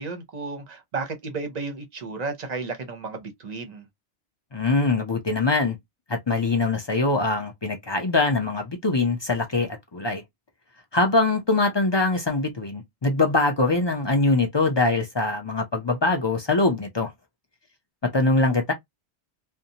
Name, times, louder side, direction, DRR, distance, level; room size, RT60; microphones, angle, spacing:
voice 1, 0.0-3.8, right 4 dB, 45° right, 0.8 m, -33 dB
voice 2, 4.5-5.8 6.1-10.2 10.9-17.1 18.0-18.7, left 3 dB, 35° left, 0.4 m, -23 dB
2.6 x 2.1 x 2.7 m
omnidirectional pair, 1.1 m